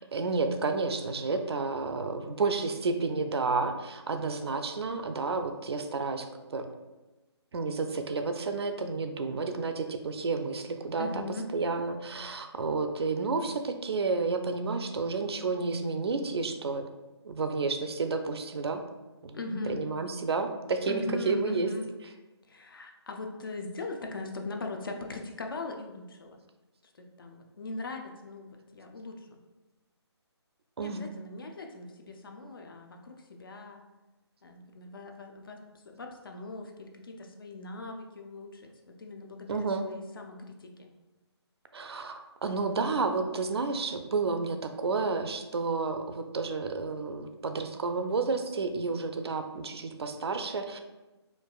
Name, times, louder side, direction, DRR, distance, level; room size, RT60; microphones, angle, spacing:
voice 1, 0.1-6.7 7.5-11.2 11.5-16.9 17.2-18.8 19.2-19.4 19.7-21.7 30.8-31.1 39.5-39.8 41.7-50.8, right 4 dB, 65° right, 6 dB, 0.4 m, -31 dB
voice 2, 11.0-11.5 19.3-19.8 20.9-21.9 22.5-26.4 27.0-29.4 30.8-33.8 34.4-40.9, left 2 dB, 50° left, 3 dB, 0.5 m, -40 dB
4.6 x 2.4 x 2.3 m, 1.1 s
hypercardioid pair, 170°, 15 cm